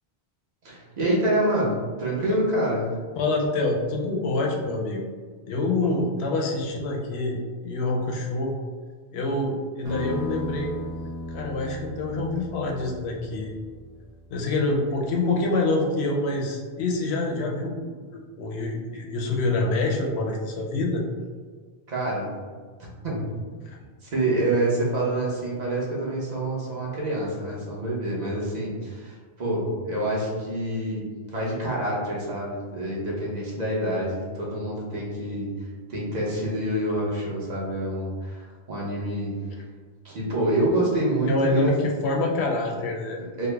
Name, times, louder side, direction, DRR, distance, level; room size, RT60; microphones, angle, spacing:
voice 1, 0.6-2.9 5.8-5.9 21.9-22.3 22.8-23.2 24.0-31.0 31.3-35.5 35.9-39.3 40.0-41.7 43.4-43.5, right 1 dB, 45° right, -5 dB, 1.0 m, -27 dB
voice 2, 3.2-5.0 5.5-8.5 9.1-10.7 11.3-13.5 14.3-21.0 41.3-41.7 42.0-43.2, left 2 dB, 90° left, 0 dB, 0.8 m, -26 dB
sound 1, 9.8-15.0, left 2 dB, 5° right, 0.8 m, -36 dB
3.4 x 2.0 x 3.3 m, 1.5 s
omnidirectional pair, 1.1 m